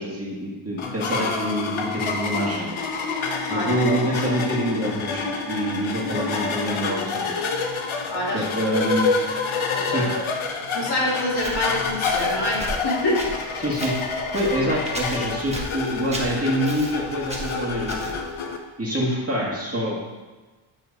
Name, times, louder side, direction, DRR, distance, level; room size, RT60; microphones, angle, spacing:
voice 1, 0.0-2.8 3.5-7.4 8.3-9.2 9.9-10.1 13.6-13.9 14.3-18.2 18.8-20.0, equal, 30° right, -5 dB, 2.0 m, -26 dB
sound 1, 0.8-18.6, left 4 dB, 70° left, 0.9 m, -28 dB
voice 2, 8.1-8.4 9.7-10.3 10.7-13.6, left 1 dB, 50° left, -5 dB, 2.4 m, -26 dB
Walk footsteps, 11.4-18.4, right 1 dB, 15° right, 1.2 m, -36 dB
9.7 x 3.7 x 4.1 m, 1.2 s
cardioid pair, 75°, 50 cm